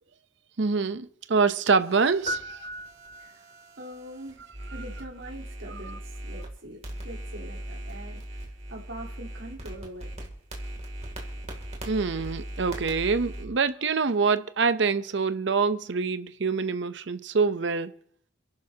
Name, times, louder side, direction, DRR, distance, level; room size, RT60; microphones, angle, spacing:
voice 1, 0.6-2.7 5.8-6.0 11.9-17.9, right 4 dB, 60° right, 0.7 m, -25 dB
sound 1, 1.8-6.5 6.8-13.4, right 1 dB, 35° right, 2.7 m, -40 dB
sound 2, 2.3-3.7, equal, 35° left, 1.5 m, -36 dB
voice 2, 3.2-3.5 3.8-4.4 4.7-6.8 7.0-10.1 11.4-11.5, right 1 dB, 75° right, 3.7 m, -43 dB
28.0 x 11.5 x 2.8 m
head